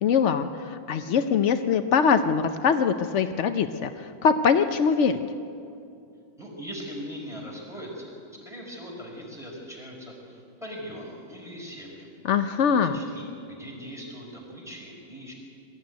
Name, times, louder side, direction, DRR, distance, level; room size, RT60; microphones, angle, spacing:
voice 1, 0.0-5.2 12.3-13.0, left 6 dB, 85° left, 9 dB, 0.6 m, -23 dB
voice 2, 6.4-8.1 8.4-12.1 12.9-15.3, equal, ahead, -3 dB, 4.7 m, -40 dB
22.0 x 13.5 x 9.3 m, 2.5 s
omnidirectional pair, 2.1 m